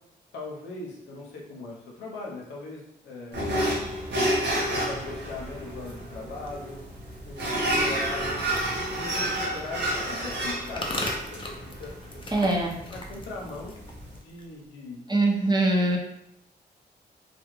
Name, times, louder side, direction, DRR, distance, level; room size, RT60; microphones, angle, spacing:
voice 1, 0.3-3.5 4.7-6.8 7.2-8.4 8.7-12.2 12.8-13.7 14.1-15.1, left 2 dB, 85° left, -2 dB, 0.6 m, -40 dB
sound 1, 3.3-14.2, right 1 dB, 70° right, 0.7 m, -30 dB
sound 2, 5.8-14.7, left 2 dB, 30° left, 0.5 m, -41 dB
voice 2, 12.3-12.8 15.1-16.0, right 2 dB, 25° right, -1 dB, 0.7 m, -22 dB
2.3 x 2.1 x 3.0 m, 0.80 s
supercardioid pair, 45°, 18 cm